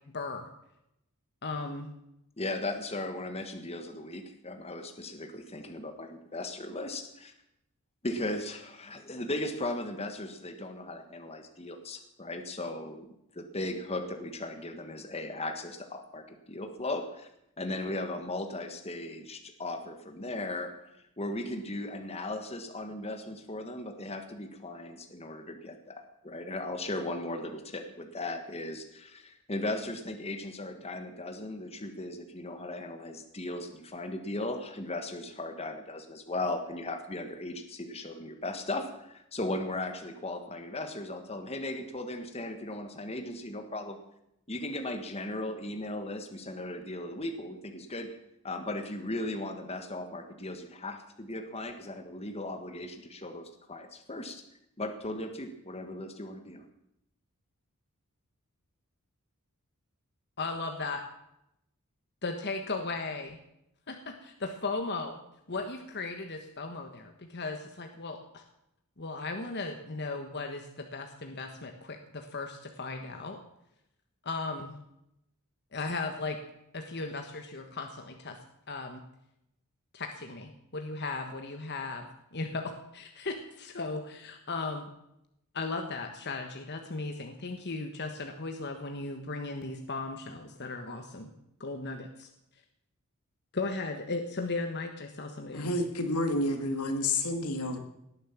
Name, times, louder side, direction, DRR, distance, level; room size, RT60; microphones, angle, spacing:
voice 1, 0.1-0.5 1.4-1.9 60.4-61.0 62.2-63.4 63.9-65.2 65.5-68.4 69.0-73.4 74.2-74.8 75.7-76.4 76.7-78.4 78.7-79.0 79.9-84.9 85.5-91.3 91.6-92.3 93.5-95.8, left 3 dB, 50° left, 5 dB, 1.4 m, -36 dB
voice 2, 2.4-7.3 8.0-13.1 13.3-17.3 17.6-44.0 44.5-48.1 48.4-54.4 54.8-56.6, left 2 dB, 25° left, 5 dB, 1.5 m, -37 dB
voice 3, 95.5-97.8, left 2 dB, 85° left, 6 dB, 2.4 m, -29 dB
18.5 x 9.8 x 7.3 m, 0.82 s
head